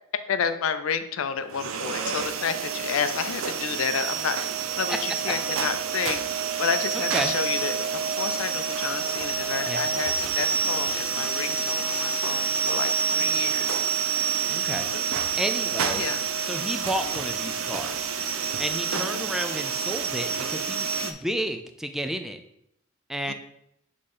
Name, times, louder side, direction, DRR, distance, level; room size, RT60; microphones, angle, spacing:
voice 1, 0.3-4.4 4.8-6.2 6.6-13.8 14.9-15.0 16.0-16.2 18.9-19.3 23.3-23.4, left 6 dB, 85° left, 10 dB, 0.5 m, -30 dB
sound 1, 1.5-21.1, right 6 dB, 90° right, 0.5 m, -28 dB
voice 2, 14.5-14.9 15.4-16.0 16.4-18.1 18.6-22.4 23.1-23.3, equal, ahead, 7 dB, 0.4 m, -31 dB
6.6 x 3.7 x 4.2 m, 0.76 s
head